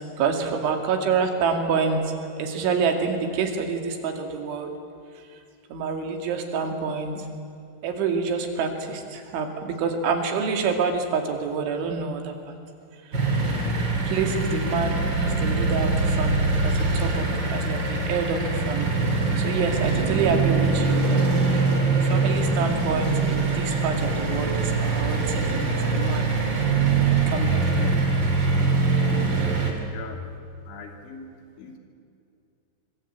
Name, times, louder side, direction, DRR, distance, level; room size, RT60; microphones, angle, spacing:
voice 1, 0.0-4.7 5.7-7.3 7.8-12.4 14.0-21.2 21.5-26.3 27.3-28.4, right 5 dB, 90° right, 5 dB, 5.0 m, -27 dB
sound 1, 13.1-29.7, right 3 dB, 30° right, 3.2 m, -23 dB
voice 2, 29.9-30.2 30.6-31.3 31.6-31.8, left 5 dB, 85° left, 4 dB, 5.2 m, -41 dB
25.5 x 24.5 x 8.9 m, 2.5 s
omnidirectional pair, 5.3 m